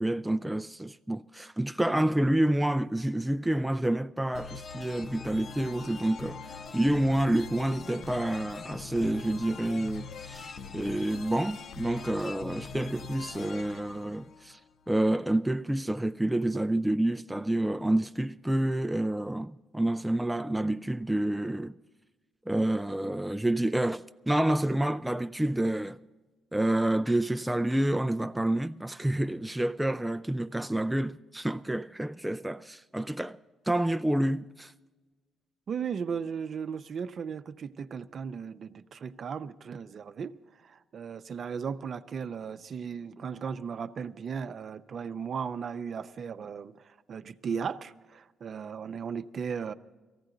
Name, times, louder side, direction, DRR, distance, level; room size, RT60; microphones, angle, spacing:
voice 1, 0.0-14.6 14.9-21.8 22.5-26.0 26.5-33.4 33.7-34.7, right 1 dB, 5° right, 0.3 m, -28 dB
sound 1, 4.3-14.9, left 5 dB, 60° left, 0.5 m, -43 dB
voice 2, 35.7-40.4 40.6-49.7, right 6 dB, 55° right, 0.6 m, -36 dB
18.0 x 15.0 x 3.9 m
cardioid pair, 90°, 0 cm